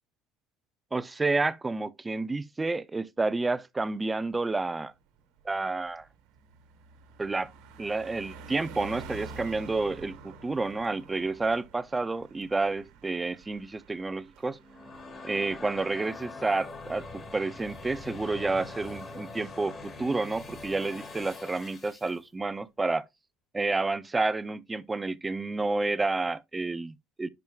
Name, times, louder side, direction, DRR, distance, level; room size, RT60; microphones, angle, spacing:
voice 1, 0.9-4.9 5.5-6.1 7.2-7.5 7.8-14.6 15.2-23.0 23.5-27.3, right 3 dB, 10° right, 0.4 m, -30 dB
Car passing by, 4.3-4.5 4.9-15.9, right 4 dB, 65° right, 1.4 m, -48 dB
sound 1, 14.5-22.2, left 3 dB, 25° left, 1.9 m, -43 dB
11.0 x 4.5 x 2.3 m
cardioid pair, 150°, 0 cm